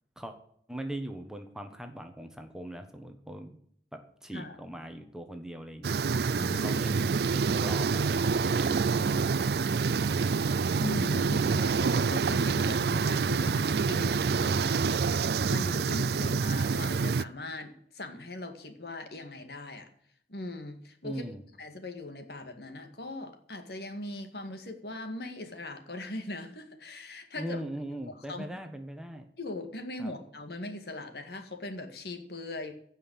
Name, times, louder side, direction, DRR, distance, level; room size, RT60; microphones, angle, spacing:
voice 1, 0.7-3.6 3.9-6.0 6.6-10.2 21.0-21.4 27.4-29.3 30.0-30.1, right 1 dB, 5° right, 6 dB, 1.2 m, -41 dB
sound 1, 5.8-17.2, right 5 dB, 65° right, 0.4 m, -27 dB
voice 2, 6.4-6.8 10.8-15.0 15.5-19.9 20.3-21.2 21.6-27.6 28.3-28.5 29.4-32.7, left 2 dB, 65° left, 6 dB, 2.0 m, -40 dB
16.5 x 5.7 x 8.7 m, 0.66 s
head